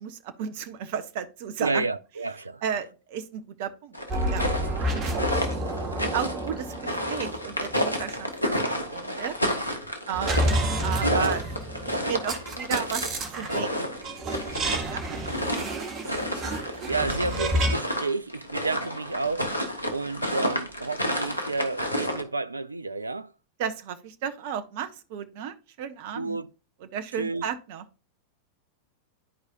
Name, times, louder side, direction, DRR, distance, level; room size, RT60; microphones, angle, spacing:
voice 1, 0.0-1.8 2.6-4.0 4.3-4.4 6.0-9.4 10.1-10.5 10.8-11.4 11.9-16.1 23.6-26.4 26.9-27.8, right 8 dB, 50° right, 0.7 m, -34 dB
voice 2, 1.6-2.8 11.0-11.4 16.5-23.3 26.1-26.5 27.2-27.4, right 3 dB, 80° right, 0.3 m, -31 dB
sound 1, 3.9-22.2, equal, 85° left, 1.2 m, -31 dB
sound 2, 4.1-8.1 10.1-13.6 14.0-17.8, right 1 dB, 25° right, 1.5 m, -30 dB
11.0 x 4.7 x 2.6 m
figure-of-eight pair, 90°, 0 cm